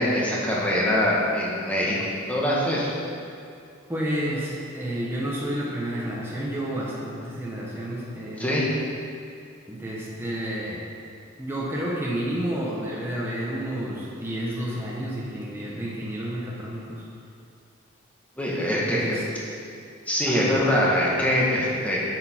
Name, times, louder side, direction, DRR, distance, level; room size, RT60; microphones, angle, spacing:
voice 1, 0.0-2.0 2.3-2.9 8.4-8.6 18.4-19.2 20.1-22.0, left 1 dB, 5° left, -6 dB, 1.5 m, -23 dB
voice 2, 3.9-8.6 9.7-10.8 11.4-17.0 18.9-19.2 20.2-20.5, right 1 dB, 10° right, -6 dB, 1.2 m, -30 dB
8.5 x 7.9 x 4.5 m, 2.5 s
head